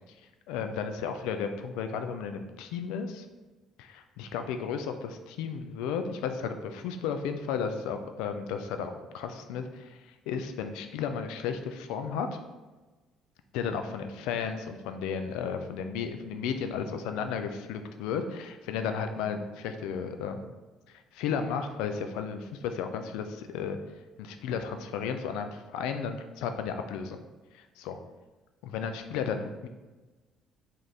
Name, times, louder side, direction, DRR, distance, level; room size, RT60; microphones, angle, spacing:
voice 1, 0.5-3.2 3.8-10.0 10.3-12.3 13.5-20.5 21.1-23.8 24.2-27.2 27.5-28.0 28.6-29.7, left 6 dB, 70° left, 7 dB, 0.3 m, -34 dB
3.2 x 2.6 x 4.1 m, 1.2 s
hypercardioid pair, 50°, 0 cm